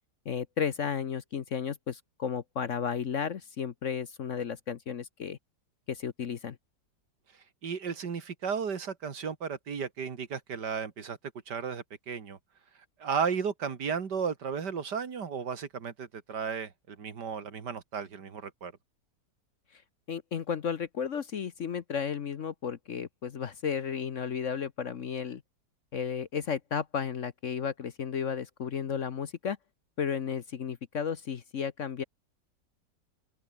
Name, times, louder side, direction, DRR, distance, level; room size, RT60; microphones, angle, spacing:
voice 1, 0.2-5.4 5.9-6.6 19.7-19.8 20.1-25.4 25.9-29.6 30.0-32.0, left 7 dB, 50° left, 1.1 m, -33 dB
voice 2, 7.6-11.2 11.5-12.4 13.0-18.7, right 6 dB, 70° right, 2.5 m, -34 dB
open air
omnidirectional pair, 1.9 m